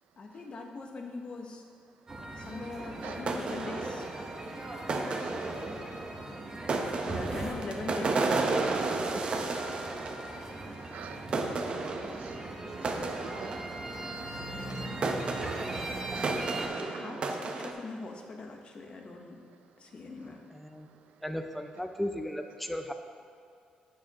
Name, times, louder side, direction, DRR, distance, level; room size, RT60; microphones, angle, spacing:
voice 1, 0.2-1.6 2.4-4.0 7.0-8.7 16.7-19.4 19.8-20.4, left 3 dB, 45° left, 2 dB, 0.9 m, -41 dB
sound 1, 2.1-16.7, right 2 dB, 25° right, 1.0 m, -40 dB
sound 2, 2.8-11.1 11.3-14.3 14.7-14.8 15.0-17.7, right 3 dB, 40° right, 0.6 m, -33 dB
voice 2, 10.9-11.7 12.1-12.4 12.8-13.8 16.1-16.3, right 8 dB, 85° right, 9 dB, 0.4 m, -47 dB
voice 3, 20.5-20.9 21.2-22.9, left 1 dB, 5° left, 6 dB, 0.5 m, -36 dB
9.4 x 7.3 x 2.9 m, 2.3 s
cardioid pair, 120°, 3 cm